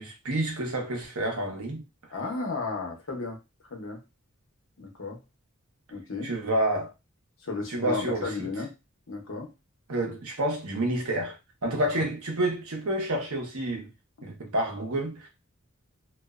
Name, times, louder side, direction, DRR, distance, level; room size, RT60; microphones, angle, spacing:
voice 1, 0.0-1.8 6.2-6.9 7.7-8.3 9.9-13.9 14.2-15.3, right 1 dB, 90° right, 0.9 m, -29 dB
voice 2, 2.1-3.4 3.7-4.0 4.8-5.2 5.9-6.3 7.4-8.7 9.1-9.5 12.0-12.1, left 3 dB, 65° left, 0.8 m, -34 dB
2.4 x 2.2 x 2.3 m
head